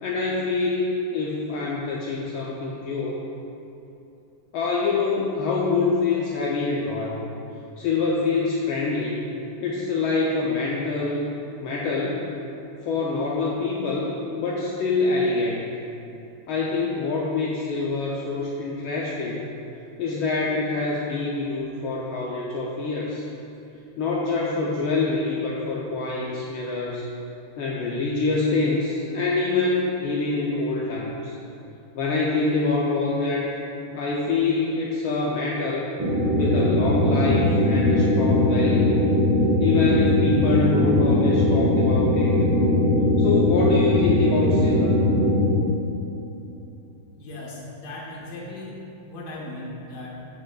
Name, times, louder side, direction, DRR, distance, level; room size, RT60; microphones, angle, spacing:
voice 1, 0.0-3.2 4.5-7.2 7.8-9.2 9.6-11.3 11.6-12.3 12.9-15.7 16.5-19.4 20.0-23.2 24.0-27.0 27.6-31.3 31.9-33.5 33.9-35.9 36.4-39.0 39.6-42.3 43.2-45.0, left 3 dB, 75° left, -4 dB, 1.4 m, -25 dB
sound 1, 36.0-45.5, left 1 dB, 80° right, 2.3 m, -20 dB
voice 2, 47.2-48.8 49.0-50.1, left 2 dB, 50° left, -4 dB, 1.5 m, -37 dB
12.5 x 5.0 x 2.3 m, 2.8 s
omnidirectional pair, 2.4 m